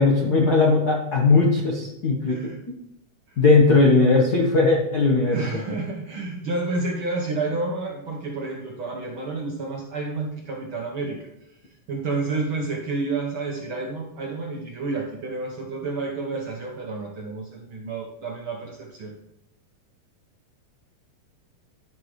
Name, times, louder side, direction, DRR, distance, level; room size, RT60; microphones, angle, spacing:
voice 1, 0.0-2.4 3.4-5.6, left 3 dB, 70° left, -2 dB, 0.9 m, -18 dB
voice 2, 5.2-11.3 11.9-19.1, right 3 dB, 60° right, -1 dB, 1.3 m, -30 dB
12.0 x 6.1 x 3.2 m, 0.81 s
omnidirectional pair, 3.5 m